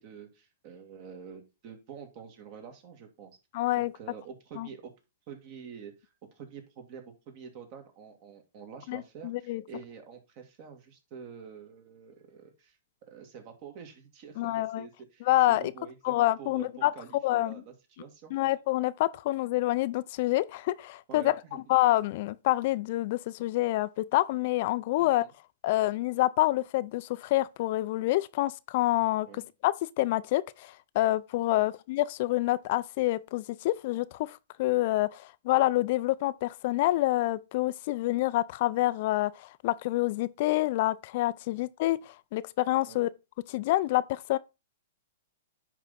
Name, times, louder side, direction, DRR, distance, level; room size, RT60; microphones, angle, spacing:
voice 1, 0.0-3.4 3.8-4.9 5.3-16.7 16.9-18.5 21.1-21.6 25.0-25.3 29.3-29.4 31.5-31.7 42.9-43.0, right 7 dB, 45° right, 2.2 m, -47 dB
voice 2, 3.5-3.9 4.6-4.7 8.9-9.6 14.4-14.9 15.3-15.6 16.0-16.9 17.2-17.6 18.3-21.3 21.7-25.2 25.6-43.1 43.5-44.4, left 17 dB, 50° left, 0.4 m, -27 dB
10.0 x 3.6 x 4.2 m
hypercardioid pair, 130°, 0 cm